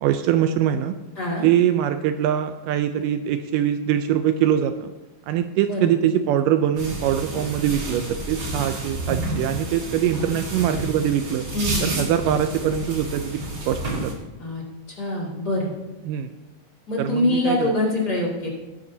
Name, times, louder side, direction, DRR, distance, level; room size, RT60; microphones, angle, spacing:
voice 1, 0.0-1.0 1.4-4.9 5.3-11.5 11.8-13.4 13.7-14.1 16.1-16.4 17.0-17.7, right 10 dB, 80° right, 8 dB, 2.0 m, -23 dB
voice 2, 1.2-1.5 5.6-5.9 10.1-10.8 11.5-12.0 14.4-14.6 14.9-15.7 16.9-18.5, left 1 dB, 30° left, -5 dB, 2.5 m, -25 dB
sound 1, 6.8-14.1, right 2 dB, 50° right, 4.1 m, -30 dB
18.0 x 10.0 x 2.7 m, 1.1 s
omnidirectional pair, 4.0 m